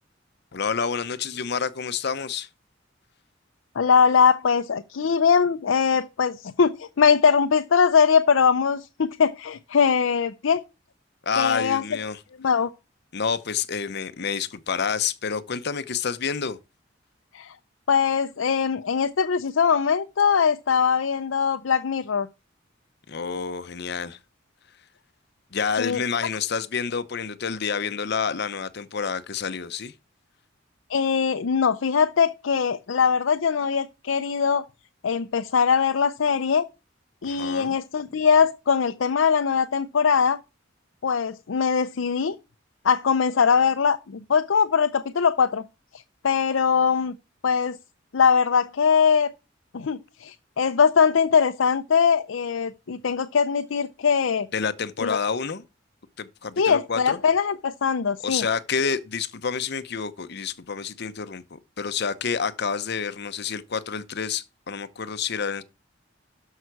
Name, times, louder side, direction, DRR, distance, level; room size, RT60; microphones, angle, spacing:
voice 1, 0.5-2.5 11.2-12.2 13.1-16.6 23.1-24.2 25.5-29.9 37.2-37.8 54.5-55.6 56.2-57.2 58.2-65.6, left 6 dB, 60° left, 0.8 m, -28 dB
voice 2, 3.8-10.6 11.4-11.8 12.4-12.7 17.3-17.6 17.9-22.3 25.8-26.0 30.9-34.6 35.0-36.7 37.2-40.4 41.0-42.4 42.8-45.6 45.9-47.2 47.4-47.8 48.1-49.3 49.7-54.5 55.0-55.2 56.6-58.4, left 6 dB, 90° left, 0.5 m, -21 dB
12.5 x 5.7 x 4.7 m
head